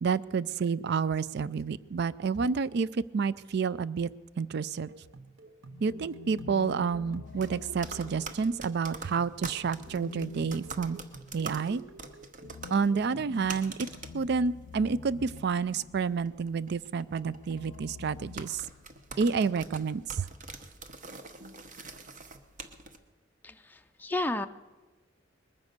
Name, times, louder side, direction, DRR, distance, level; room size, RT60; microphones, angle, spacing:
voice 1, 0.0-4.1 4.4-4.9 5.8-11.0 11.3-11.8 12.7-13.9 14.1-18.6 19.2-20.3, right 5 dB, 55° right, 19 dB, 0.4 m, -29 dB
sound 1, 4.9-13.4, right 3 dB, 75° right, 0.8 m, -51 dB
sound 2, 5.6-8.9 9.6-16.2 17.2-19.1, left 6 dB, 85° left, 0.4 m, -48 dB
sound 3, 7.3-23.0, right 3 dB, 40° right, 0.9 m, -46 dB
voice 2, 23.4-24.5, left 2 dB, 10° left, 7 dB, 0.4 m, -32 dB
20.5 x 9.6 x 6.6 m, 1.2 s
head